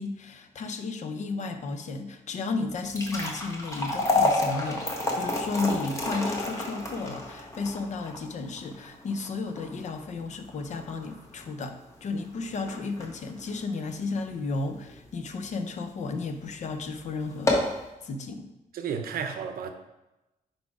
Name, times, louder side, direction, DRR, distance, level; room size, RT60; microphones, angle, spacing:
voice 1, 0.0-17.7 18.0-18.5, left 3 dB, 50° left, 7 dB, 0.7 m, -33 dB
sound 1, 2.7-15.0 15.4-15.5 16.2-16.4 16.7-16.8 17.3-17.8, left 2 dB, 20° left, 1.2 m, -30 dB
voice 2, 18.7-19.7, right 7 dB, 80° right, 7 dB, 0.7 m, -32 dB
5.0 x 4.1 x 4.8 m, 0.98 s
cardioid pair, 125°, 15 cm